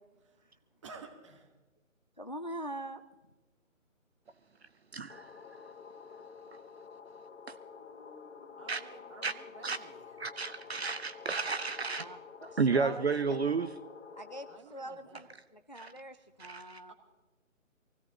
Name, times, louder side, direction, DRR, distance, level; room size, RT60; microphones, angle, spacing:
voice 1, 0.8-1.5 8.6-10.3 14.5-15.2 16.3-16.9, right 4 dB, 20° right, 6 dB, 1.4 m, -53 dB
voice 2, 2.2-3.0 12.0-12.2 12.7-13.4 14.2-16.9, right 1 dB, 35° left, 9 dB, 0.4 m, -43 dB
voice 3, 4.9-5.3 7.5-7.6 8.7-8.8 9.2-9.3 9.6-9.8 10.2-12.0 12.4-13.7 15.8-15.9 16.4-16.8, right 4 dB, 50° right, 12 dB, 0.7 m, -32 dB
sound 1, 5.1-14.6, left 6 dB, 60° left, 1.2 m, -50 dB
voice 4, 7.3-9.3 11.8-12.0, left 1 dB, ahead, -5 dB, 0.9 m, -60 dB
24.0 x 17.0 x 2.9 m, 1.2 s
figure-of-eight pair, 155°, 40 cm